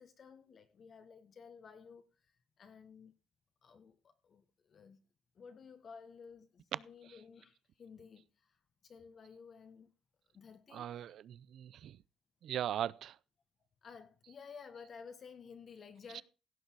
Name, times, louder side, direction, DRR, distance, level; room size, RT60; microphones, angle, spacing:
voice 1, 0.0-3.1 3.6-5.0 5.3-9.9 10.3-11.1 13.8-16.2, left 6 dB, 45° left, 1.4 m, -54 dB
voice 2, 10.7-11.9 12.4-13.1 16.2-16.3, right 10 dB, 65° right, 0.5 m, -39 dB
16.5 x 6.6 x 4.7 m
cardioid pair, 115°, 0 cm